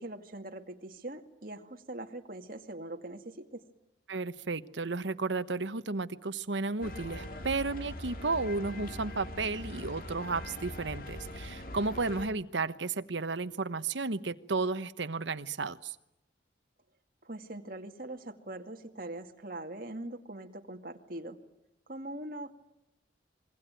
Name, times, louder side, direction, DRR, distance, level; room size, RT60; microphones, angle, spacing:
voice 1, 0.0-3.6 17.2-21.4 21.9-22.5, right 1 dB, 50° right, 4 dB, 2.3 m, -42 dB
voice 2, 4.1-16.0, right 3 dB, 80° right, 12 dB, 1.1 m, -33 dB
sound 1, 6.8-12.2, left 1 dB, 50° left, 2.9 m, -42 dB
26.5 x 23.0 x 9.1 m, 0.85 s
head